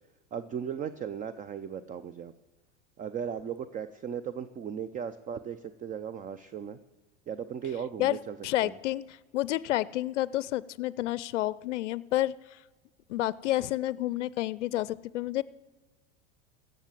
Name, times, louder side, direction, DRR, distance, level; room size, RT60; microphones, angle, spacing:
voice 1, 0.3-2.3 3.0-6.8 7.3-8.4 8.6-8.7, right 8 dB, 20° right, 13 dB, 0.5 m, -37 dB
voice 2, 8.0-12.6 13.1-15.4, left 15 dB, 80° left, 20 dB, 0.5 m, -30 dB
16.0 x 6.6 x 7.3 m, 1.2 s
hypercardioid pair, 95°, 36 cm